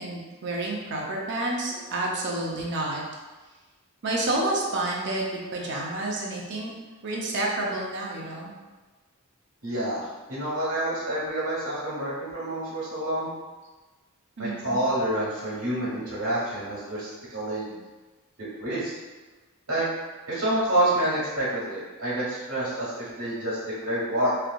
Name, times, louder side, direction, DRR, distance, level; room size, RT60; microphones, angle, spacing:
voice 1, 0.0-3.0 4.0-6.7 7.0-8.5 14.4-14.8, right 2 dB, 55° right, -2 dB, 0.6 m, -29 dB
voice 2, 9.6-10.0 10.3-13.3 14.4-17.8 18.6-19.0 19.7-19.8 20.3-24.3, right 1 dB, 85° right, -8 dB, 1.4 m, -28 dB
3.2 x 2.5 x 2.4 m, 1.3 s
head